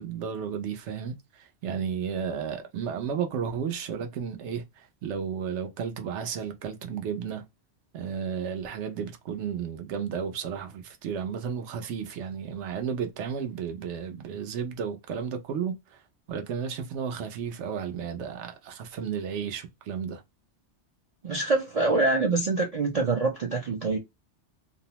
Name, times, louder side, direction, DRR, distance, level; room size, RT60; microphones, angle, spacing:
voice 1, 0.0-7.4 7.9-16.0 16.3-20.2, right 7 dB, 85° right, 0.9 m, -33 dB
voice 2, 21.2-24.0, right 3 dB, 55° right, 0.4 m, -25 dB
2.6 x 2.0 x 2.8 m
omnidirectional pair, 1.2 m